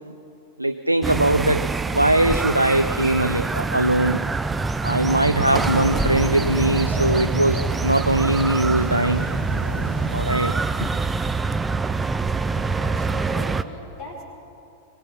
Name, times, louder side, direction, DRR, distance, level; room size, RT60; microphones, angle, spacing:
voice 1, 0.6-4.2 4.8-9.3 10.1-10.5 10.8-10.9, right 1 dB, 85° right, 9 dB, 0.5 m, -21 dB
sound 1, 1.0-13.6, right 4 dB, 10° right, 0.6 m, -25 dB
sound 2, 5.5-10.5, equal, 85° left, 3.4 m, -35 dB
voice 2, 12.5-14.2, left 1 dB, 40° left, -3 dB, 5.3 m, -39 dB
23.5 x 20.5 x 5.9 m, 2.7 s
figure-of-eight pair, 90°, 0 cm